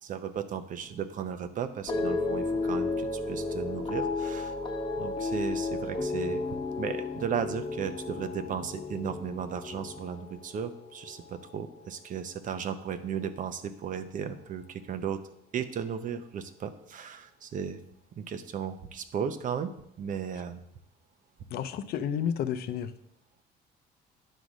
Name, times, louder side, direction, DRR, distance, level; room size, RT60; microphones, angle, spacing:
voice 1, 0.0-4.5 5.0-6.4 6.8-15.2 15.5-17.8 18.1-20.6 21.5-21.6, right 7 dB, 50° right, 11 dB, 0.8 m, -35 dB
sound 1, 1.9-12.2 12.5-13.1, left 3 dB, 30° left, 1.1 m, -33 dB
voice 2, 21.5-22.9, left 8 dB, 65° left, 12 dB, 0.6 m, -31 dB
10.0 x 3.8 x 6.2 m, 0.73 s
cardioid pair, 110°, 17 cm